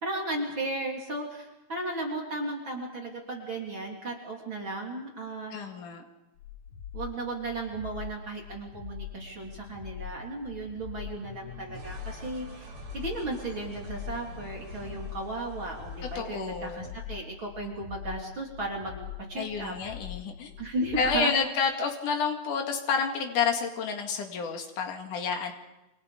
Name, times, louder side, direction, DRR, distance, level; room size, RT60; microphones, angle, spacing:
voice 1, 0.0-5.6 6.9-19.8 20.6-21.4, right 2 dB, 40° right, -1 dB, 4.1 m, -35 dB
voice 2, 5.5-6.0 16.2-16.9 19.4-20.5 21.0-25.5, left 5 dB, 80° left, 3 dB, 3.7 m, -29 dB
sound 1, 6.4-21.3, left 11 dB, 60° left, 2.5 m, -43 dB
sound 2, 9.1-17.0, equal, 65° right, 4.4 m, -47 dB
28.0 x 27.0 x 5.2 m, 0.99 s
omnidirectional pair, 3.5 m